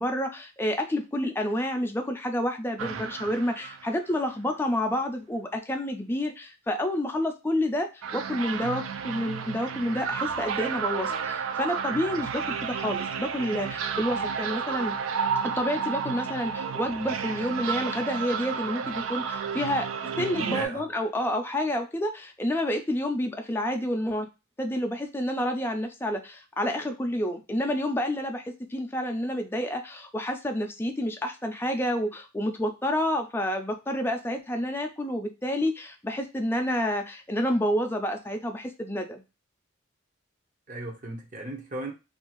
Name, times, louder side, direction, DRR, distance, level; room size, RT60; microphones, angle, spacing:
voice 1, 0.0-14.9 15.4-19.9 20.2-24.3 24.6-39.2, left 1 dB, 10° left, 4 dB, 0.4 m, -29 dB
sound 1, 2.8-4.2 8.0-20.7, right 6 dB, 85° right, 0.4 m, -32 dB
voice 2, 20.2-20.8 40.7-41.9, right 2 dB, 40° right, 1 dB, 0.7 m, -36 dB
2.6 x 2.4 x 2.9 m, 0.28 s
head